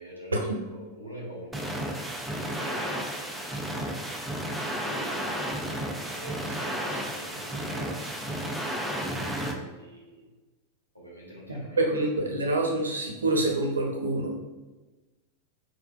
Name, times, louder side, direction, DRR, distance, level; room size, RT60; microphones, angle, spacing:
voice 1, 0.0-1.7 2.3-3.2 4.8-5.6 6.0-10.2 10.9-11.8, right 1 dB, 90° left, -7 dB, 1.4 m, -45 dB
sound 1, 1.5-9.5, right 1 dB, 5° right, 0.6 m, -32 dB
voice 2, 11.5-14.3, right 2 dB, 75° right, 1 dB, 0.9 m, -27 dB
4.7 x 4.6 x 2.4 m, 1.2 s
figure-of-eight pair, 90°, 0 cm